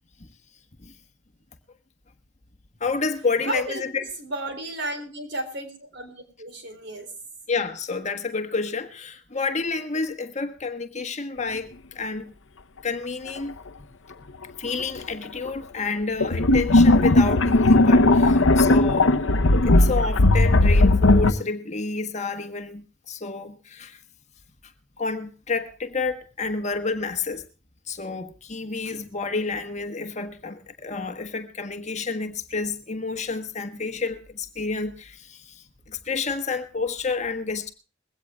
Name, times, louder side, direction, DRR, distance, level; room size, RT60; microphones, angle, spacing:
voice 1, 2.8-4.0 7.5-12.3 12.8-13.5 14.6-19.2 19.6-24.0 25.0-27.4 27.9-37.7, left 4 dB, 35° left, 1.4 m, -29 dB
voice 2, 3.4-3.8 4.2-7.1 15.4-15.5, right 1 dB, 60° right, 4.1 m, -33 dB
sound 1, 14.8-14.9 16.2-21.3, left 2 dB, 85° left, 0.9 m, -17 dB
21.5 x 17.0 x 2.3 m
head